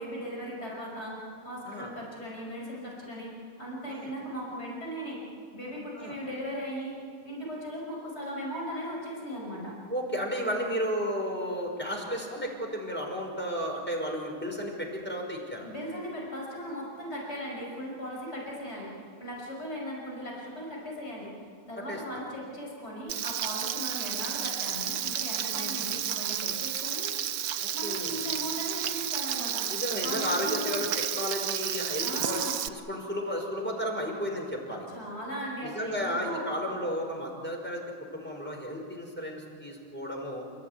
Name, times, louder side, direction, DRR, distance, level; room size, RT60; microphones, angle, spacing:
voice 1, 0.0-5.2 5.5-7.0 7.2-9.8 15.6-21.3 21.7-27.1 27.7-29.7 30.0-30.8 32.0-32.6 34.9-36.5, equal, 50° left, -3 dB, 6.3 m, -38 dB
voice 2, 9.9-15.7 21.8-22.0 25.5-25.9 27.6-28.2 29.7-32.4 32.7-34.9 35.6-37.8 38.1-40.4, equal, 5° left, 0 dB, 5.5 m, -33 dB
Frying (food), 23.1-32.7, right 10 dB, 90° right, 1.3 m, -32 dB
29.5 x 15.5 x 9.6 m, 2.2 s
omnidirectional pair, 1.5 m